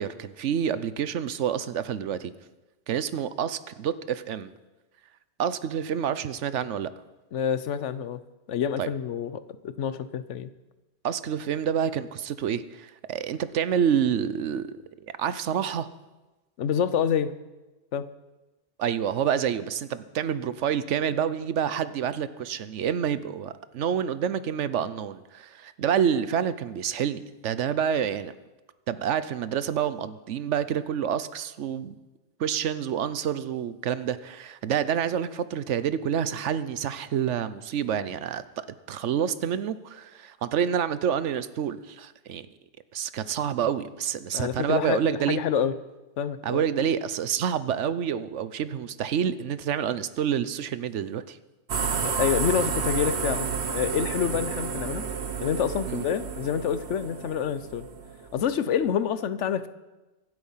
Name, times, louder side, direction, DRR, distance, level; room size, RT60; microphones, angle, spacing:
voice 1, 0.0-2.3 2.9-4.5 5.4-6.9 8.8-8.9 11.0-14.7 15.2-15.9 18.8-28.3 28.9-31.9 32.4-38.4 38.9-42.5 42.9-45.4 46.4-51.4 55.9-56.0, right 8 dB, 90° right, 14 dB, 1.1 m, -28 dB
voice 2, 7.3-8.2 8.5-10.5 16.6-17.3 17.9-18.1 44.3-45.7 46.2-46.6 52.0-55.0 55.4-57.9 58.3-59.7, left 8 dB, 90° left, 14 dB, 1.1 m, -27 dB
sound 1, 51.7-58.5, right 6 dB, 70° right, 1.2 m, -31 dB
24.5 x 8.1 x 5.6 m, 1.1 s
omnidirectional pair, 1.2 m